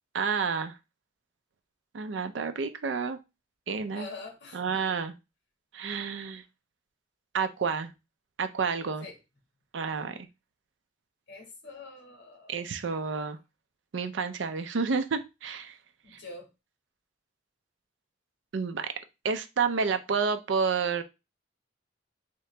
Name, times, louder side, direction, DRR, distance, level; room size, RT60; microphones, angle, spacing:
voice 1, 0.1-0.8 1.9-3.2 3.7-4.1 4.5-5.1 5.7-6.4 7.3-7.9 8.4-9.1 9.7-10.2 12.5-13.4 13.9-15.7 16.1-16.2 18.5-18.9 19.2-21.0, right 5 dB, 80° right, 9 dB, 0.5 m, -30 dB
voice 2, 3.9-4.8 9.0-9.2 11.3-12.7 16.0-16.5, left 3 dB, 65° left, 0 dB, 1.5 m, -45 dB
3.7 x 2.9 x 3.3 m, 0.26 s
head